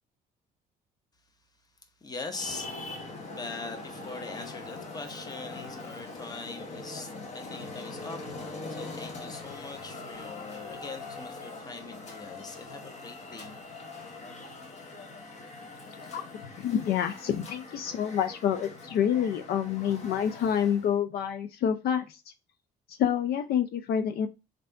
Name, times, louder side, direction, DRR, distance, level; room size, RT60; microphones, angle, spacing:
voice 1, 2.0-13.7, left 3 dB, 25° left, 0.8 m, -42 dB
Traffic noise roadway noise, 2.3-21.0, left 3 dB, 40° left, 1.1 m, -42 dB
voice 2, 16.6-22.2 22.9-24.3, left 9 dB, 65° left, 0.5 m, -28 dB
3.3 x 2.6 x 4.3 m
cardioid pair, 110°, 17 cm